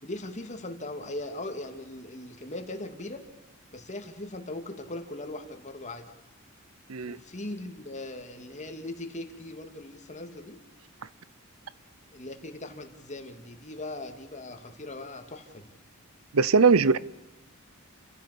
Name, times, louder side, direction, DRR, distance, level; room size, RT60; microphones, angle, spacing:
voice 1, 0.0-3.2 3.7-6.1 7.1-10.6 12.1-15.7, left 2 dB, 35° left, 2.7 m, -39 dB
voice 2, 16.3-17.0, right 5 dB, 80° right, 0.7 m, -20 dB
29.0 x 15.5 x 8.5 m
head